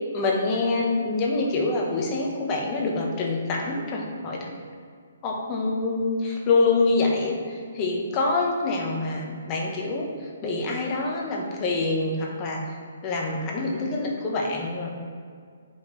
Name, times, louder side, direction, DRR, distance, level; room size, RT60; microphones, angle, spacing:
voice 1, 0.1-4.5 5.2-10.1 10.4-12.6 13.0-14.9, left 3 dB, 25° left, 0 dB, 1.2 m, -26 dB
8.7 x 5.5 x 3.3 m, 2.1 s
hypercardioid pair, 150°, 0 cm